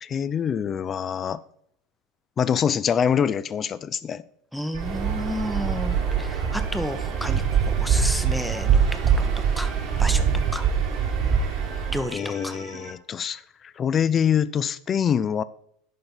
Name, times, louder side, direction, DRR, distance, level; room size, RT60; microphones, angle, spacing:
voice 1, 0.0-1.4 2.4-4.2 12.1-15.4, left 8 dB, 30° left, 17 dB, 0.4 m, -25 dB
voice 2, 4.5-9.3 9.6-9.7 10.0-10.3 10.5-10.7 11.9-12.6, equal, ahead, 10 dB, 0.8 m, -31 dB
Waves surf, 4.7-12.1, right 7 dB, 50° right, 1.5 m, -23 dB
sound 1, 4.7-12.9, right 3 dB, 75° right, 1.6 m, -42 dB
10.5 x 3.9 x 5.7 m, 0.69 s
figure-of-eight pair, 75°, 0 cm